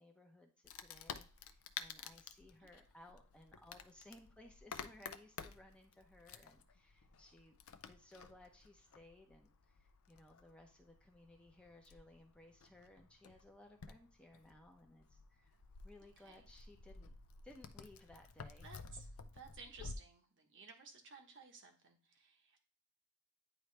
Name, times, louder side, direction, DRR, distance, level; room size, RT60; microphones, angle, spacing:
voice 1, 0.0-7.6 7.9-15.6 15.8-17.1 17.4-18.7, left 1 dB, 5° left, 2 dB, 0.7 m, -61 dB
Wood, 0.6-20.0, left 6 dB, 75° left, 0.5 m, -53 dB
voice 2, 16.0-16.5 18.6-22.6, right 4 dB, 60° right, 4 dB, 1.2 m, -57 dB
9.4 x 3.1 x 3.2 m, 0.38 s
head